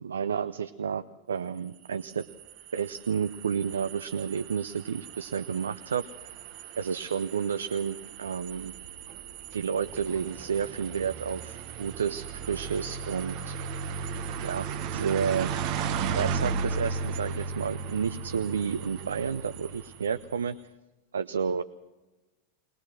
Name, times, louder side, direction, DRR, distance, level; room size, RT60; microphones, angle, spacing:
voice 1, 0.0-2.3 2.7-6.0 6.8-8.7 9.5-13.6 14.4-14.7 14.9-15.5 16.1-20.6 21.1-21.6, right 7 dB, 70° right, 13 dB, 0.6 m, -31 dB
sound 1, 1.8-20.3, right 5 dB, 45° right, 1.1 m, -36 dB
21.5 x 20.5 x 6.2 m, 1.1 s
figure-of-eight pair, 90°, 0 cm